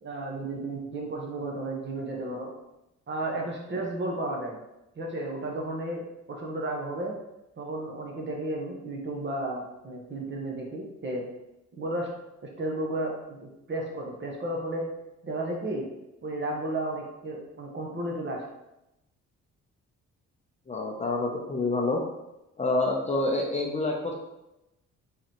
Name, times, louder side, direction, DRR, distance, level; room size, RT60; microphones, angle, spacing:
voice 1, 0.0-2.5 3.1-4.6 5.0-6.0 6.3-7.2 7.5-11.3 11.8-12.1 12.4-14.9 15.2-15.9 16.2-18.4, right 1 dB, 40° right, 0 dB, 1.0 m, -33 dB
voice 2, 20.7-22.0 22.6-24.1, left 2 dB, 25° left, 0 dB, 0.6 m, -27 dB
3.8 x 3.3 x 2.9 m, 0.91 s
cardioid pair, 90°, 30 cm